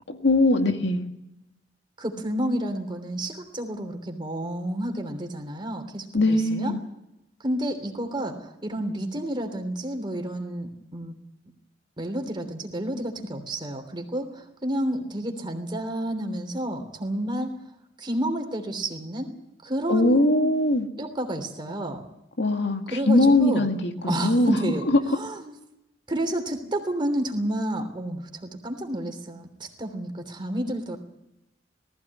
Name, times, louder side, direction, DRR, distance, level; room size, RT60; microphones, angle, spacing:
voice 1, 0.1-1.1 6.1-6.8 19.9-20.9 22.4-24.6 24.9-25.0, left 2 dB, 65° left, 2.0 m, -21 dB
voice 2, 2.0-6.7 7.4-11.1 12.0-17.5 18.0-19.3 19.6-20.5 21.0-22.0 22.9-23.7 24.0-25.5 26.1-31.0, right 1 dB, 25° right, 3.2 m, -30 dB
19.0 x 15.5 x 9.7 m
head